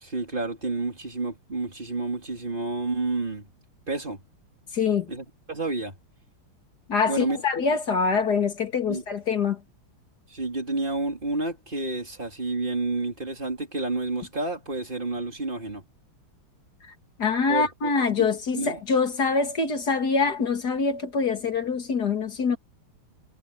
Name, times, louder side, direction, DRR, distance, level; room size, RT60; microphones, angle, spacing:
voice 1, 0.0-3.5 3.9-4.2 5.1-5.9 7.1-7.4 8.9-9.0 10.3-15.8 17.5-18.2 18.5-18.8, right 2 dB, 20° right, 3.9 m, -30 dB
voice 2, 4.7-5.1 6.9-9.6 17.2-22.6, left 5 dB, 50° left, 2.6 m, -24 dB
omnidirectional pair, 2.4 m